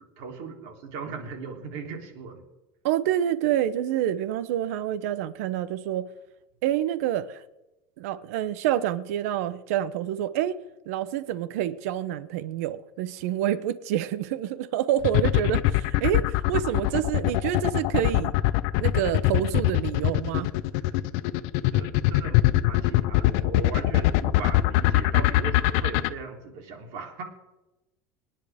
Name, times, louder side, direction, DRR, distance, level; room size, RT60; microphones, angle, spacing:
voice 1, 0.0-2.4 19.3-19.5 19.9-20.0 21.6-27.2, right 5 dB, 60° right, 3.3 m, -38 dB
voice 2, 2.8-6.1 6.6-7.4 8.0-10.5 10.9-18.3 18.8-20.5, right 11 dB, 90° right, 0.8 m, -27 dB
sound 1, 15.0-26.1, left 17 dB, 60° left, 0.6 m, -22 dB
24.5 x 10.5 x 3.6 m
cardioid pair, 175°, 8 cm